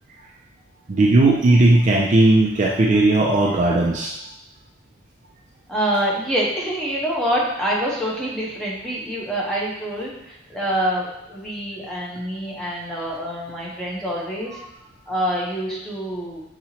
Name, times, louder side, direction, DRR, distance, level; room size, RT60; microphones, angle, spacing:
voice 1, 0.9-4.1, right 2 dB, 35° right, -1 dB, 0.4 m, -16 dB
voice 2, 5.7-14.7 15.1-16.4, right 1 dB, 5° left, -5 dB, 0.9 m, -26 dB
5.5 x 2.9 x 2.8 m, 0.87 s
head